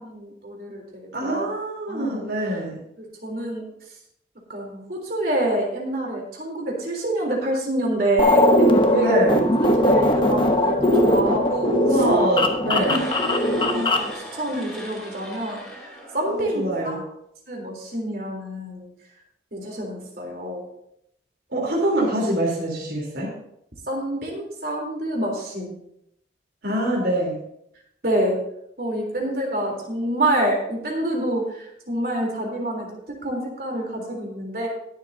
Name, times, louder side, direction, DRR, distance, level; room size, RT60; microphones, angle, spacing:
voice 1, 0.0-1.4 1.9-2.3 3.0-3.7 4.5-9.2 9.6-11.8 12.8-17.0 17.5-18.9 19.5-20.7 23.9-25.8 28.0-28.4 28.8-32.9 33.2-34.7, right 1 dB, 55° right, 0 dB, 3.5 m, -27 dB
voice 2, 1.1-2.8 9.0-9.5 11.8-13.0 16.3-17.0 21.5-23.3 26.6-27.4, right 1 dB, 75° right, -4 dB, 3.6 m, -24 dB
sound 1, 8.2-14.1, left 1 dB, 30° left, 1.0 m, -19 dB
sound 2, 12.8-16.9, left 1 dB, 5° left, 2.9 m, -38 dB
22.0 x 7.6 x 2.8 m, 0.76 s
head